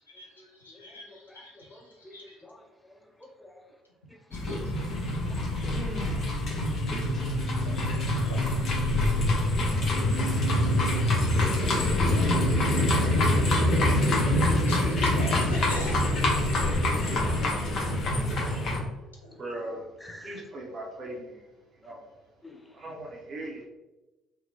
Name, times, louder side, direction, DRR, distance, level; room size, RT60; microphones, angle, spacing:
voice 1, 0.4-3.6 4.1-4.6 5.1-5.5 8.7-8.8 12.8-13.5 13.8-14.9 15.7-17.8 18.3-18.8 19.4-19.6 20.0-20.4 21.8-21.9 22.4-22.9, left 1 dB, 10° left, 4 dB, 0.4 m, -50 dB
sound 1, 4.3-18.8, left 1 dB, 50° left, 0.7 m, -25 dB
voice 2, 5.7-6.3 19.4-19.9 20.2-21.3 21.9-22.0 22.8-23.7, right 1 dB, 45° right, 0 dB, 0.6 m, -38 dB
Singing, 6.8-9.3 9.9-11.1 12.0-13.3 15.2-15.6, right 4 dB, 85° right, 0.6 m, -36 dB
voice 3, 7.6-8.0 8.3-8.4 14.7-16.0, left 1 dB, 90° left, -2 dB, 0.4 m, -40 dB
2.7 x 2.1 x 2.6 m, 1.1 s
figure-of-eight pair, 55°, 0 cm